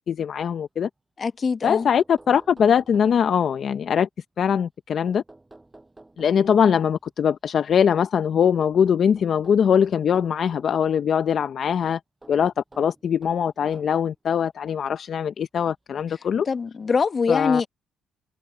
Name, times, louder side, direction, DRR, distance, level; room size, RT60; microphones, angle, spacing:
voice 1, 0.1-0.9 1.6-4.1 4.4-5.2 6.2-12.0 12.3-16.5 17.3-17.6, left 8 dB, 55° left, 0.7 m, -22 dB
voice 2, 1.2-1.9 16.5-17.7, left 5 dB, 40° left, 1.4 m, -23 dB
sound 1, 1.8-3.6 5.1-7.1 8.6-10.8 12.2-14.1 15.0-15.1 16.4-16.5 16.8-16.9, right 2 dB, 15° right, 6.7 m, -51 dB
cardioid pair, 90°, 0 cm